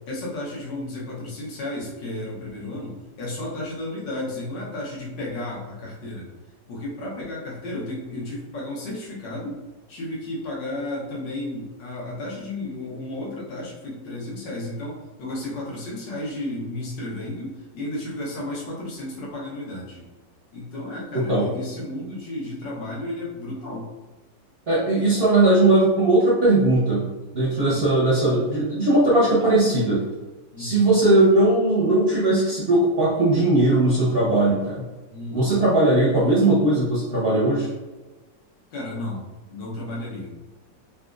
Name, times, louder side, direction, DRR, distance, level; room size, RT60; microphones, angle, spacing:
voice 1, 0.1-6.3 6.7-9.6 9.9-20.0 20.5-23.9 27.6-27.8 30.5-30.9 35.1-35.6 38.7-39.2 39.5-40.3, left 1 dB, 85° left, -4 dB, 1.6 m, -33 dB
voice 2, 21.1-21.5 24.7-30.0 30.6-34.9 35.3-37.7, right 2 dB, 55° right, -8 dB, 0.6 m, -19 dB
4.0 x 2.3 x 2.4 m, 1.2 s
omnidirectional pair, 1.9 m